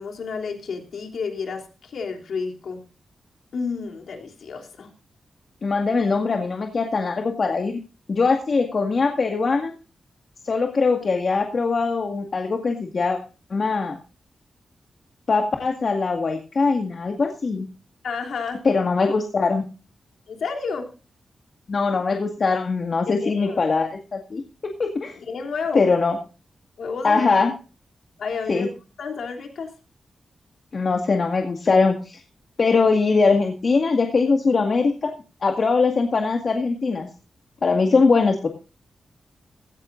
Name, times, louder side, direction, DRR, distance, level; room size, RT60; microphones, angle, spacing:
voice 1, 0.0-2.8 3.5-4.9 18.0-18.6 20.3-20.9 23.2-23.6 25.3-25.9 26.8-27.3 28.2-28.7 29.0-29.7, left 5 dB, 80° left, 2 dB, 3.3 m, -30 dB
voice 2, 5.6-7.8 8.1-9.7 10.4-13.2 13.5-13.9 15.3-17.7 18.6-19.6 21.7-25.2 25.7-26.2 27.0-27.5 28.5-28.7 30.7-32.2 32.6-35.1 35.4-37.1 37.6-38.5, left 4 dB, 55° left, 3 dB, 2.0 m, -21 dB
17.0 x 14.0 x 2.6 m, 0.34 s
cardioid pair, 55°, 0 cm